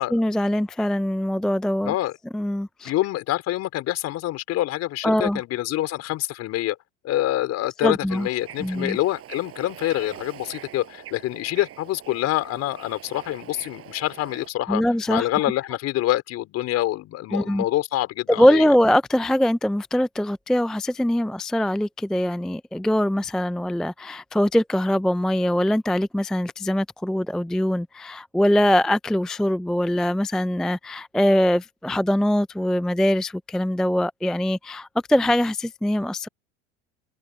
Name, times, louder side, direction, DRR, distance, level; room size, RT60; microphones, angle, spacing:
voice 1, 0.1-1.9 2.3-2.9 5.0-5.4 7.8-8.3 8.6-9.0 14.7-15.3 17.3-17.6 18.3-36.3, left 1 dB, ahead, 0.4 m, -22 dB
voice 2, 2.8-6.8 7.0-14.8 15.1-18.6, left 15 dB, 50° left, 4.7 m, -26 dB
Bird / Ocean, 8.1-14.5, right 12 dB, 40° right, 6.0 m, -43 dB
open air
hypercardioid pair, 100°, 34 cm